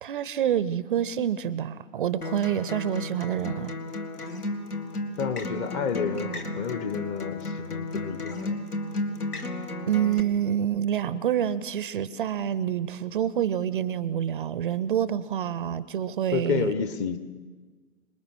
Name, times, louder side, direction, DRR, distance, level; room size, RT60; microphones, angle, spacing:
voice 1, 0.0-3.8 9.9-16.7, right 9 dB, 35° right, 17 dB, 0.6 m, -27 dB
Acoustic guitar, 2.2-10.2, left 2 dB, 85° left, 2.1 m, -33 dB
voice 2, 5.2-8.5 16.3-17.2, left 6 dB, 20° left, 11 dB, 0.7 m, -30 dB
26.0 x 20.5 x 6.2 m, 1.4 s
figure-of-eight pair, 120°, 45 cm